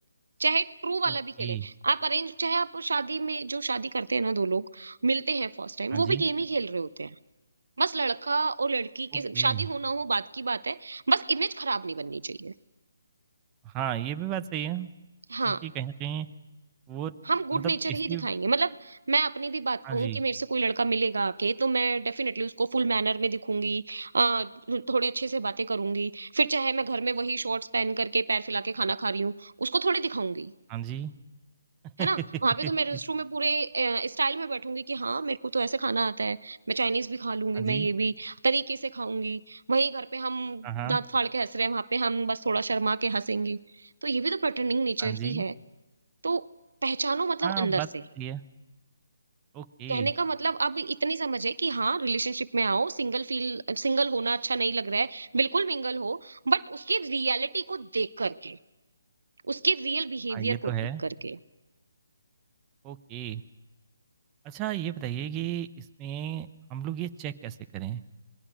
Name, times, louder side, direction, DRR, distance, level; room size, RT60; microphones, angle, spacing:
voice 1, 0.4-7.2 7.8-12.5 15.3-15.6 17.3-30.5 32.0-45.5 46.2-46.5 46.8-47.8 49.9-58.6 59.5-60.7 61.0-61.4, right 4 dB, 75° right, 16 dB, 0.7 m, -28 dB
voice 2, 1.1-1.7 5.9-6.2 9.1-9.7 13.6-14.9 15.4-16.3 16.9-17.1 17.5-18.3 19.8-20.2 30.7-31.1 31.8-32.7 37.5-37.9 40.6-41.0 45.0-45.4 47.4-47.9 48.2-48.4 49.5-50.1 60.3-61.0 62.8-63.4 64.4-68.0, right 11 dB, 20° right, 8 dB, 0.9 m, -34 dB
26.5 x 20.5 x 6.3 m, 1.1 s
figure-of-eight pair, 150°, 0 cm